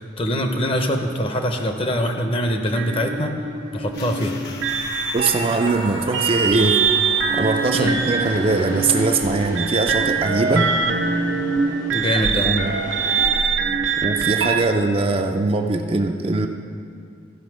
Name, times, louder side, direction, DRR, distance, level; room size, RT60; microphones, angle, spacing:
voice 1, 0.0-3.3 3.7-4.4 7.7-8.0 10.5-10.6 11.9-12.5, equal, 30° left, 5 dB, 0.7 m, -23 dB
sound 1, 1.9-13.4, equal, 75° left, 2.8 m, -38 dB
sound 2, 2.7-14.6, right 5 dB, 85° right, 0.8 m, -23 dB
sound 3, 3.9-11.4, left 2 dB, 60° left, 1.1 m, -40 dB
voice 2, 5.1-6.8 7.3-10.7 12.4-12.7 14.0-16.5, right 3 dB, 30° right, 4 dB, 0.4 m, -21 dB
14.5 x 5.3 x 6.2 m, 2.3 s
head